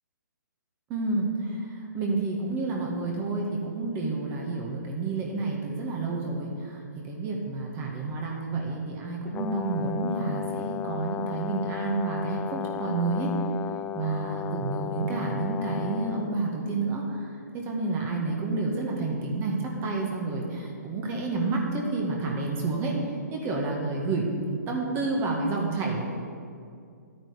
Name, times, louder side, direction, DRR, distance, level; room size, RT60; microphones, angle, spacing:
voice 1, 0.9-13.3 13.9-26.2, right 3 dB, 25° right, -1 dB, 1.7 m, -30 dB
Brass instrument, 9.3-16.3, left 10 dB, 15° left, 0.3 m, -34 dB
12.0 x 8.9 x 5.1 m, 2.3 s
figure-of-eight pair, 130°, 10 cm